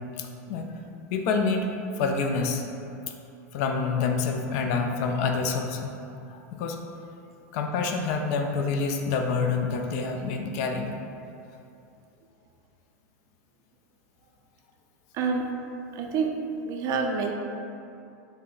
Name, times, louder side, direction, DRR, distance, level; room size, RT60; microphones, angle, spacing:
voice 1, 0.2-0.7 1.1-1.7 2.0-2.6 3.1-3.2 3.5-5.9 6.3-6.8 7.5-10.9, left 4 dB, 55° left, 3 dB, 0.3 m, -27 dB
voice 2, 15.1-15.5 16.0-17.3, right 5 dB, 40° right, 3 dB, 0.4 m, -28 dB
3.2 x 2.1 x 3.7 m, 2.7 s
supercardioid pair, 120°, 9 cm